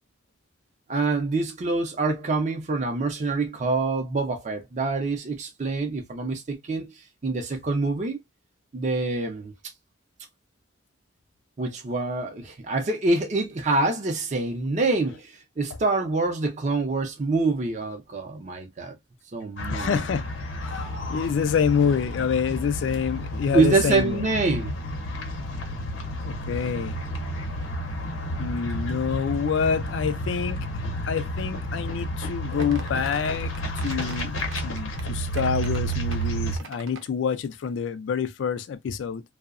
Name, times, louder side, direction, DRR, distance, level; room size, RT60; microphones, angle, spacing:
voice 1, 0.9-8.2 8.7-9.5 11.6-18.9 19.3-20.0 23.5-24.7, right 3 dB, 40° right, 0.5 m, -26 dB
sound 1, 19.6-36.6, equal, 90° left, 0.7 m, -31 dB
voice 2, 19.7-20.3 20.6-24.2 26.2-27.0 28.4-30.6 31.1-33.5 33.8-34.3 34.6-39.2, left 6 dB, 65° left, 0.3 m, -27 dB
sound 2, 32.6-35.0 35.3-37.1, right 4 dB, 80° right, 0.6 m, -42 dB
2.6 x 2.0 x 2.3 m
head